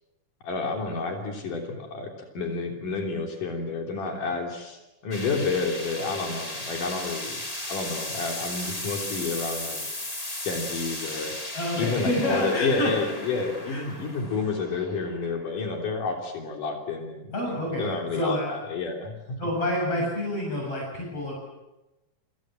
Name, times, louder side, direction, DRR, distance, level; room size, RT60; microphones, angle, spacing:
voice 1, 0.4-7.4 7.7-9.8 10.4-11.3 11.8-19.4, left 4 dB, 75° left, 2 dB, 5.0 m, -30 dB
sound 1, 5.1-16.2, left 1 dB, 10° left, 2.8 m, -36 dB
voice 2, 11.5-12.9 13.7-13.8 17.3-18.6 19.4-21.3, left 1 dB, 45° left, -2 dB, 8.7 m, -28 dB
29.0 x 26.5 x 7.7 m, 1.0 s
omnidirectional pair, 3.7 m